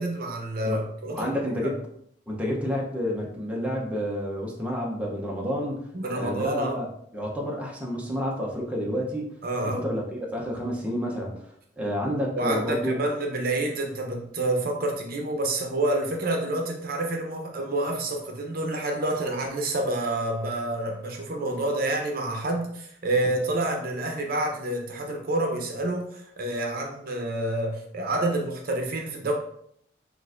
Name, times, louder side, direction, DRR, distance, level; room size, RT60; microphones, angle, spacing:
voice 1, 0.0-1.3 1.6-1.7 5.9-6.8 9.4-9.8 12.3-29.3, right 2 dB, 55° right, 2 dB, 0.7 m, -28 dB
voice 2, 1.1-1.8 2.3-5.9 6.1-9.3 9.6-11.5 11.8-13.0, equal, 10° right, -2 dB, 0.7 m, -29 dB
6.2 x 2.5 x 2.5 m, 0.69 s
head